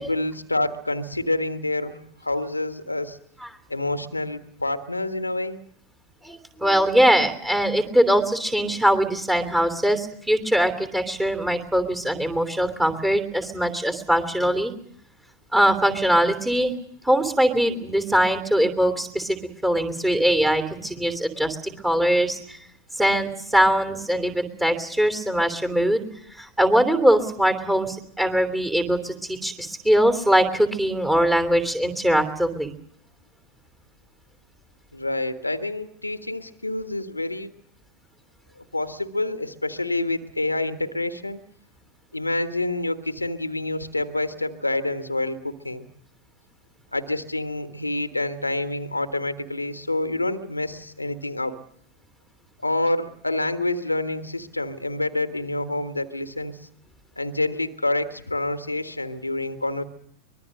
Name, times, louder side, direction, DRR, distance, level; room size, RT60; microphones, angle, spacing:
voice 1, 0.0-3.2 3.7-5.6 34.9-37.5 38.6-41.4 42.1-45.9 46.9-51.6 52.6-56.7 57.2-59.8, left 2 dB, 85° left, 10 dB, 1.5 m, -27 dB
voice 2, 6.2-14.7 15.5-16.7 17.0-22.6 23.0-26.0 26.3-32.7, equal, 5° right, 8 dB, 3.0 m, -22 dB
24.0 x 21.0 x 6.5 m, 0.69 s
figure-of-eight pair, 90°, 0 cm